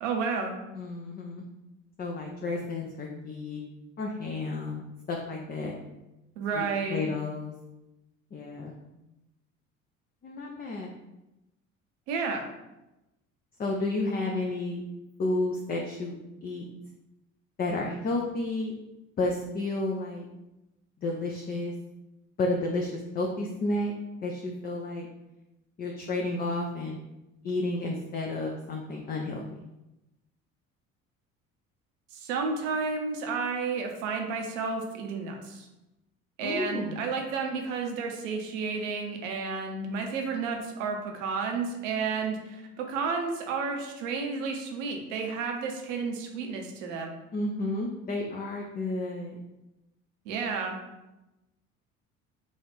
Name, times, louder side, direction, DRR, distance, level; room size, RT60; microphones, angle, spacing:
voice 1, 0.0-0.6 6.4-7.1 12.1-12.4 32.1-35.7 36.4-47.1 50.3-50.8, right 4 dB, 65° right, 2 dB, 0.8 m, -31 dB
voice 2, 0.8-1.4 2.0-3.6 4.0-5.7 6.5-7.5 8.3-8.7 10.2-10.9 13.6-14.8 15.2-16.1 16.4-16.7 17.6-18.7 19.2-20.3 21.0-21.7 22.4-23.9 24.2-25.1 25.8-27.0 27.4-29.4 36.4-37.0 47.3-49.4, left 2 dB, 25° left, 0 dB, 0.5 m, -31 dB
5.3 x 2.4 x 3.4 m, 0.96 s
figure-of-eight pair, 55°, 40 cm